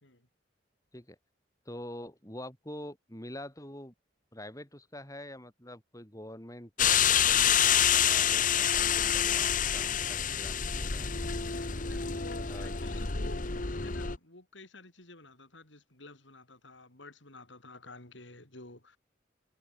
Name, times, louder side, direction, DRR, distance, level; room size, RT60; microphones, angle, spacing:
voice 1, 1.7-3.9 4.3-11.1 12.3-12.7, left 1 dB, 20° left, 7.8 m, -46 dB
sound 1, 6.8-14.2, left 8 dB, 45° left, 1.2 m, -27 dB
voice 2, 11.4-19.0, left 2 dB, 75° left, 5.0 m, -51 dB
head